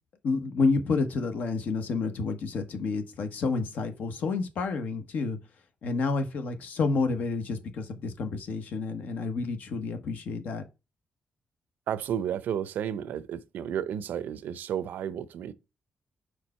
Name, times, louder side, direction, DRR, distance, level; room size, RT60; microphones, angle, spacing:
voice 1, 0.2-5.4 5.8-10.6, left 4 dB, 65° left, 1.1 m, -29 dB
voice 2, 11.9-15.5, right 9 dB, 85° right, 0.5 m, -32 dB
4.8 x 4.6 x 4.2 m
wide cardioid pair, 160°, 3 cm